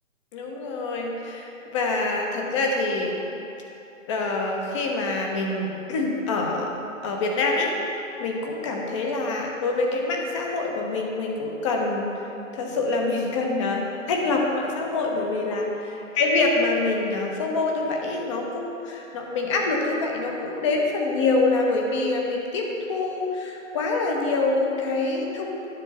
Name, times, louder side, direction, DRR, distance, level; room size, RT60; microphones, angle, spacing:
voice 1, 0.3-3.2 4.1-6.7 7.0-7.7 8.2-12.2 12.5-15.8 16.2-25.7, left 3 dB, 25° left, 0 dB, 0.8 m, -25 dB
10.5 x 3.6 x 6.5 m, 3.0 s
figure-of-eight pair, 135°, 40 cm